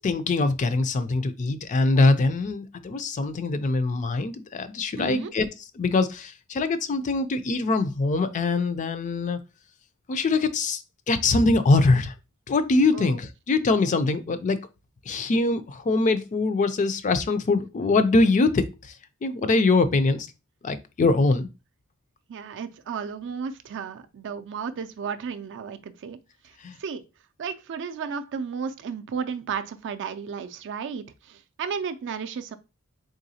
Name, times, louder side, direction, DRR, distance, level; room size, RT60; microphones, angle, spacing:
voice 1, 0.0-5.5 5.8-9.4 10.1-10.8 11.1-12.1 12.5-14.6 15.1-18.7 19.2-20.3 20.6-21.5 26.6-26.8, left 3 dB, 35° left, 0.4 m, -23 dB
voice 2, 5.0-5.3 12.9-13.1 22.3-26.2 26.8-27.0 27.4-32.6, right 6 dB, 55° right, 0.4 m, -33 dB
3.8 x 3.4 x 2.7 m
head